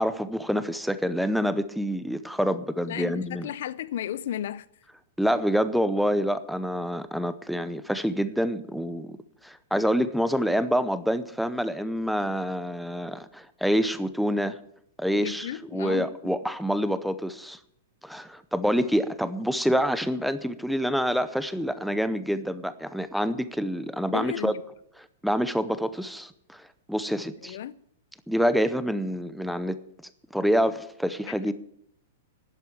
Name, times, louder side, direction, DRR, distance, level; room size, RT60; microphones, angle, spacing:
voice 1, 0.0-3.5 5.2-9.2 9.4-14.6 15.0-17.6 18.0-24.6 25.2-27.6 28.3-29.8 30.3-31.5, equal, ahead, 0.6 m, -27 dB
voice 2, 2.9-4.7 15.2-16.1 24.1-24.6 27.4-27.7, left 11 dB, 60° left, 0.5 m, -33 dB
11.5 x 7.9 x 8.8 m
hypercardioid pair, 150°, 0 cm